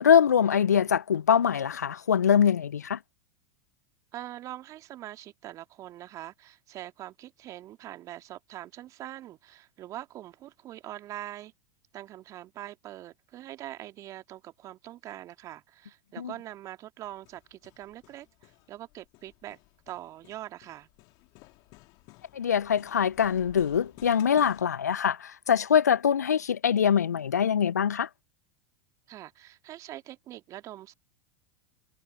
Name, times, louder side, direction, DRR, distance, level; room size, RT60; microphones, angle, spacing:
voice 1, 0.0-3.0 16.2-16.3 22.3-28.1, left 8 dB, 85° left, 0.4 m, -23 dB
voice 2, 4.1-11.5 11.9-19.6 19.9-20.9 29.1-30.9, right 13 dB, 40° right, 2.6 m, -43 dB
Hammer, 17.0-24.6, left 25 dB, 50° left, 3.6 m, -55 dB
figure-of-eight pair, 90°, 9 cm